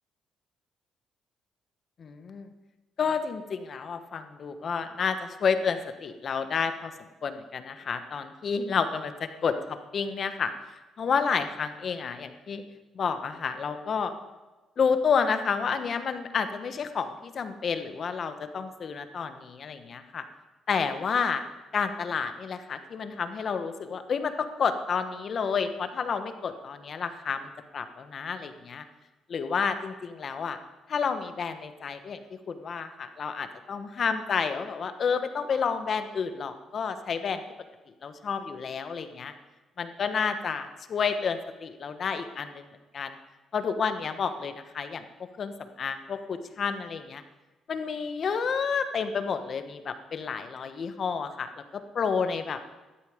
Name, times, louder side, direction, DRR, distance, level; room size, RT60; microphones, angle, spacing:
voice 1, 2.0-2.5 3.0-6.9 7.2-10.5 11.0-12.6 12.9-14.1 14.8-20.2 20.7-21.4 21.7-28.8 29.3-30.6 30.9-37.4 38.0-39.3 39.8-42.6 42.9-43.1 43.5-45.0 45.4-47.2 47.7-52.6, left 6 dB, 50° left, 9 dB, 1.3 m, -30 dB
15.0 x 12.0 x 5.2 m, 1.2 s
cardioid pair, 90°, 0 cm